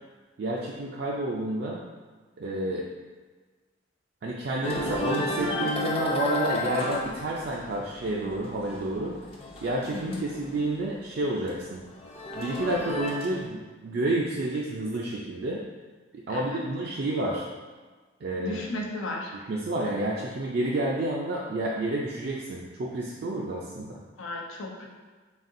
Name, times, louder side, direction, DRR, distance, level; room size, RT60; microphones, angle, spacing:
voice 1, 0.4-1.8 2.4-2.9 4.2-9.2 9.6-11.8 12.3-15.6 16.3-17.5 18.2-18.6 19.3-24.0, right 1 dB, 50° right, -3 dB, 0.3 m, -30 dB
sound 1, 4.6-10.9 11.2-13.4, left 2 dB, 30° left, 0.5 m, -33 dB
voice 2, 9.9-10.3 16.3-16.6 18.4-19.3 24.2-24.9, left 1 dB, 80° left, 0 dB, 0.6 m, -35 dB
4.1 x 3.7 x 2.5 m, 1.4 s
head